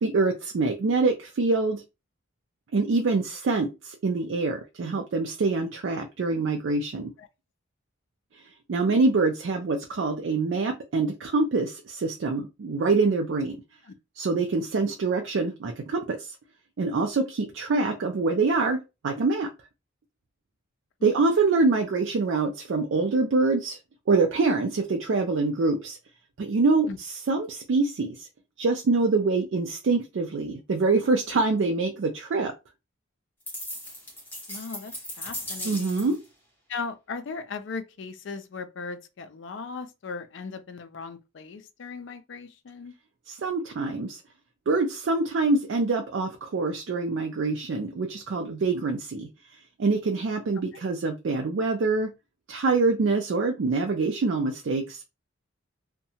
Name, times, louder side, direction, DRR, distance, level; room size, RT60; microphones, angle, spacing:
voice 1, 0.0-1.8 2.7-7.1 8.7-13.6 14.2-16.3 16.8-19.5 21.0-23.8 24.1-26.0 26.4-26.9 27.3-28.3 28.6-32.5 35.6-36.2 43.3-44.2 44.7-49.3 49.8-52.1 52.5-55.0, right 3 dB, 60° right, 0.4 m, -25 dB
sound 1, 33.5-36.2, equal, 10° left, 0.8 m, -37 dB
voice 2, 34.5-36.2 36.7-42.9, left 4 dB, 60° left, 0.4 m, -38 dB
2.7 x 2.2 x 2.7 m
head